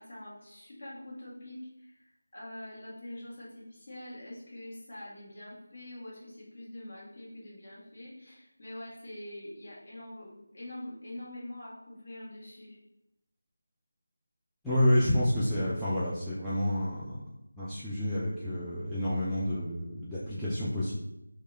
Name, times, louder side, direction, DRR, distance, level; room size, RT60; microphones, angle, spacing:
voice 1, 0.0-12.8, left 1 dB, 40° left, -6 dB, 1.4 m, -45 dB
voice 2, 14.6-17.2 17.6-20.9, left 1 dB, ahead, -14 dB, 0.4 m, -29 dB
4.6 x 2.2 x 3.2 m, 0.86 s
figure-of-eight pair, 165°, 0 cm